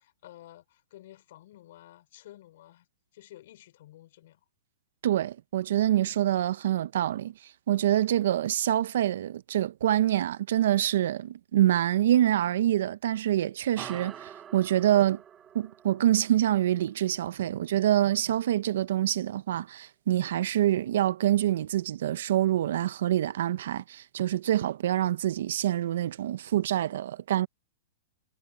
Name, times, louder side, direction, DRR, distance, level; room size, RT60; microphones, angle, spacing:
voice 1, 0.0-2.9 3.1-4.4, left 14 dB, 60° left, 5.8 m, -52 dB
voice 2, 5.0-7.3 7.7-15.2 15.5-27.5, right 12 dB, 70° right, 1.1 m, -26 dB
sound 1, 13.8-18.6, right 9 dB, 20° right, 6.6 m, -48 dB
hypercardioid pair, 125°, 0 cm